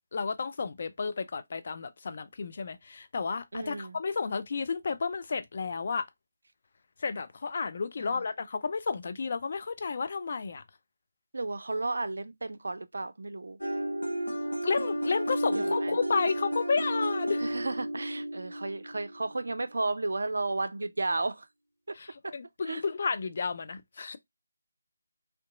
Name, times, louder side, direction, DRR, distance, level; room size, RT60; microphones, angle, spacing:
voice 1, 0.1-6.1 7.0-10.6 14.6-17.5 21.9-24.2, left 5 dB, 45° left, 0.3 m, -32 dB
voice 2, 3.5-4.0 8.0-8.2 11.3-13.6 15.5-15.9 17.4-21.5 22.7-22.8, right 2 dB, 65° right, 0.4 m, -33 dB
sound 1, 13.6-19.4, right 1 dB, 85° left, 0.8 m, -32 dB
2.8 x 2.2 x 2.3 m
figure-of-eight pair, 155°, 0 cm